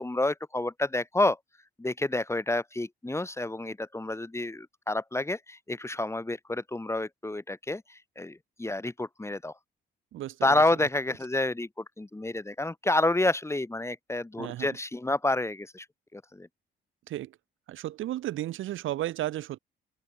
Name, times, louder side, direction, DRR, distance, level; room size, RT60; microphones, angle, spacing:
voice 1, 0.0-1.4 1.8-9.5 10.4-15.9 16.1-16.5, left 2 dB, 15° left, 6.3 m, -29 dB
voice 2, 10.1-10.9 14.4-14.8 17.1-17.4 17.7-19.6, right 14 dB, 85° right, 5.4 m, -34 dB
open air
cardioid pair, 90°, 20 cm